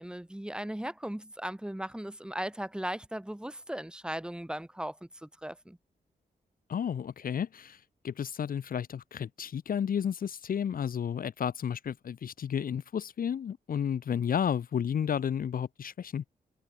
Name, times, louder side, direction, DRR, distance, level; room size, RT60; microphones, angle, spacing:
voice 1, 0.0-5.8, right 1 dB, 5° right, 4.8 m, -37 dB
voice 2, 6.7-16.2, left 8 dB, 70° left, 1.5 m, -32 dB
wide cardioid pair, 110°, 15 cm